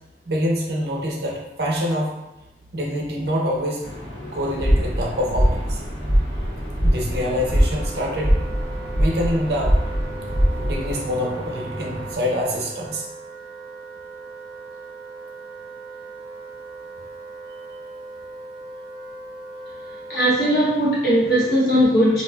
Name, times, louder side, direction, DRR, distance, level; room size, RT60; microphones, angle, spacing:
voice 1, 0.3-2.2 2.7-3.8 4.3-5.8 6.8-8.3 9.0-9.8 10.6-13.1, equal, 60° right, -1 dB, 0.6 m, -25 dB
sound 1, 3.8-12.2, left 1 dB, 80° left, 0.8 m, -36 dB
sound 2, 4.6-11.0, equal, 10° left, 0.6 m, -22 dB
Wind instrument woodwind instrument, 7.4-20.8, right 3 dB, 35° left, 1.2 m, -38 dB
voice 2, 20.1-22.2, equal, 55° left, -8 dB, 0.9 m, -18 dB
4.0 x 2.4 x 2.3 m, 0.97 s
head